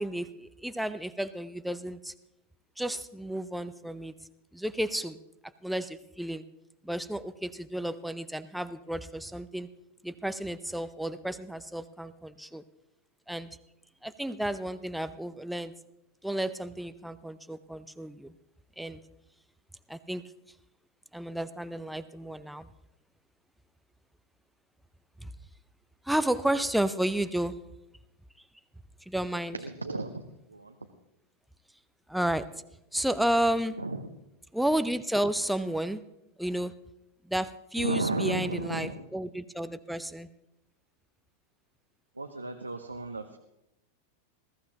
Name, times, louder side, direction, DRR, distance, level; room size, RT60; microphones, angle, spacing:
voice 1, 0.0-2.1 2.8-4.1 4.5-5.2 5.6-6.4 6.8-9.7 10.0-12.6 13.3-13.5 14.0-15.7 16.2-18.3 18.8-19.0 19.9-20.2 21.1-22.7 25.2-25.3 26.1-27.6 29.1-29.6 32.1-32.5 32.9-33.8 34.5-36.1 36.4-36.7 37.3-40.3, right 1 dB, ahead, 12 dB, 0.6 m, -32 dB
voice 2, 29.5-30.2 30.5-30.8 33.8-34.1 37.8-39.1 42.1-43.4, right 3 dB, 80° right, 5 dB, 0.8 m, -33 dB
20.5 x 14.5 x 3.0 m, 0.86 s
figure-of-eight pair, 90°, 0 cm